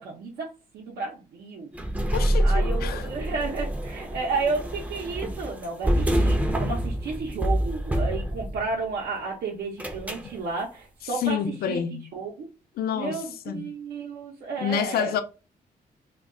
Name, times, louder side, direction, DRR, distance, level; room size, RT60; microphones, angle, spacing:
voice 1, 0.0-1.7 2.4-11.4 11.7-11.8 12.1-12.5 12.9-15.1, right 4 dB, 85° right, 0.6 m, -32 dB
sound 1, 1.7-8.8 9.8-10.3, right 1 dB, 10° right, 0.4 m, -26 dB
voice 2, 2.1-3.1 11.2-12.1 12.8-13.7 14.6-15.2, left 8 dB, 75° left, 0.4 m, -28 dB
2.2 x 2.2 x 3.6 m
cardioid pair, 110°, 16 cm